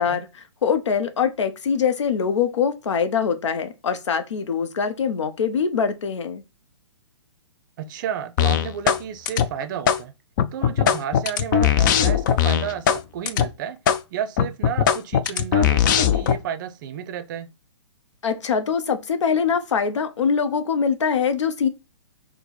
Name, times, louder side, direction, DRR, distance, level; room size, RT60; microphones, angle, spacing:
voice 1, 0.0-6.4 18.2-21.7, left 6 dB, 70° left, 0.8 m, -23 dB
voice 2, 7.8-10.1 10.5-13.8 14.1-17.5, right 9 dB, 40° right, 0.6 m, -31 dB
sound 1, 8.4-9.0 9.3-10.0 10.4-13.0 13.3-13.5 13.9-14.0 14.4-16.4, left 9 dB, 40° left, 0.4 m, -19 dB
4.3 x 2.1 x 4.1 m
hypercardioid pair, 135°, 16 cm